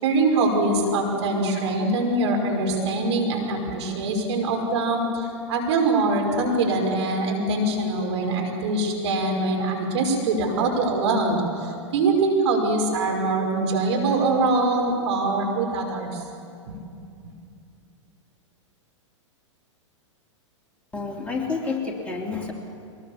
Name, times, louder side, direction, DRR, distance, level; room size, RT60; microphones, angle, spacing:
voice 1, 0.0-16.2, right 2 dB, 60° right, 1 dB, 5.4 m, -23 dB
voice 2, 20.9-22.5, left 4 dB, 10° left, -1 dB, 3.0 m, -29 dB
23.5 x 20.5 x 7.2 m, 2.5 s
hypercardioid pair, 105°, 16 cm